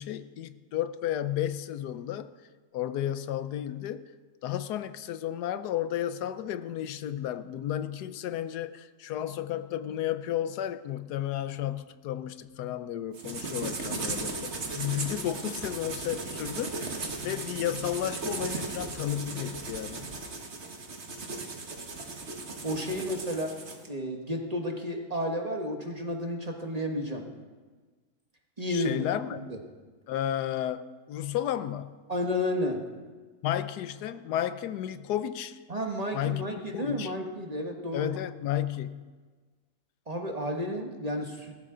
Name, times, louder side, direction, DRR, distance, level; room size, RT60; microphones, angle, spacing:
voice 1, 0.0-2.3 2.7-4.0 4.4-20.1 28.7-29.5 30.1-32.0 33.4-35.6 36.1-37.1 37.9-39.1, left 11 dB, 90° left, 13 dB, 1.3 m, -33 dB
sound 1, 13.1-23.9, right 3 dB, 45° right, 1.6 m, -36 dB
voice 2, 22.6-23.5 23.9-27.2 28.6-29.1 29.5-29.6 32.1-32.8 35.7-38.2 40.1-41.6, left 1 dB, 25° right, 2 dB, 1.3 m, -32 dB
19.0 x 13.5 x 3.8 m, 1.4 s
omnidirectional pair, 1.7 m